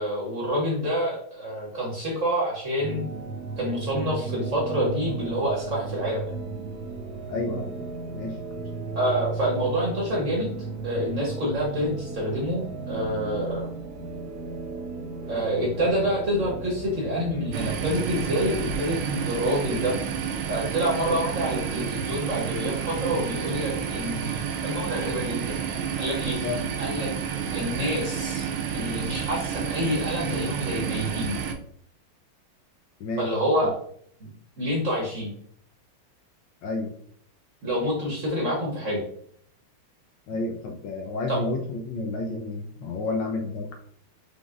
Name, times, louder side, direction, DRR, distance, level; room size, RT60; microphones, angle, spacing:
voice 1, 0.0-3.0 3.6-6.3 9.0-10.5 10.8-13.7 15.3-20.0 20.5-27.1 27.5-31.4 33.2-33.7 34.2-34.3 34.6-35.3 37.6-39.0 41.3-41.4, equal, 45° right, -2 dB, 1.1 m, -27 dB
sound 1, 2.8-18.8, right 3 dB, 70° right, 1.0 m, -35 dB
voice 2, 7.3-7.7 8.1-8.4 26.4-26.6 33.0-33.3 33.6-33.7 36.6-36.9 40.3-43.7, left 3 dB, 70° left, 2 dB, 1.1 m, -30 dB
sound 2, 17.5-31.5, right 7 dB, 85° right, 1.5 m, -30 dB
4.9 x 3.5 x 2.4 m, 0.63 s
omnidirectional pair, 2.3 m